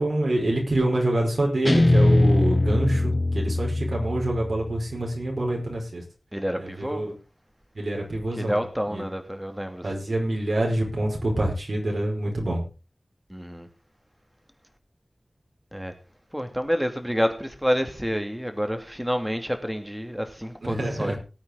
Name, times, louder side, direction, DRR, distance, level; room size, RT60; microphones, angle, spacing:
voice 1, 0.0-6.0 6.6-7.1 7.7-8.6 8.9-9.0 9.8-12.6 20.7-21.2, right 1 dB, 85° right, 5.1 m, -26 dB
Guitar, 1.7-4.9, left 2 dB, 35° left, 1.1 m, -21 dB
voice 2, 6.3-7.1 8.3-9.8 13.3-13.7 15.7-15.9 16.3-21.2, equal, 5° right, 2.8 m, -28 dB
18.0 x 8.7 x 3.9 m
wide cardioid pair, 60°, 0 cm